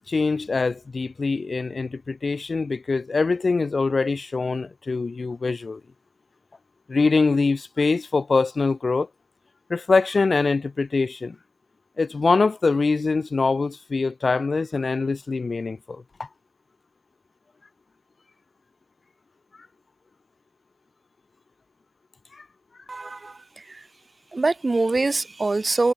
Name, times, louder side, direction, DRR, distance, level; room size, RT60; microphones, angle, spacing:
voice 1, 0.1-5.8 6.9-9.1 9.7-11.4 12.0-16.0 22.3-22.4, left 4 dB, 45° left, 1.2 m, -23 dB
voice 2, 22.9-23.3 24.3-25.9, right 3 dB, 35° right, 0.4 m, -23 dB
cardioid pair, 60°, 0 cm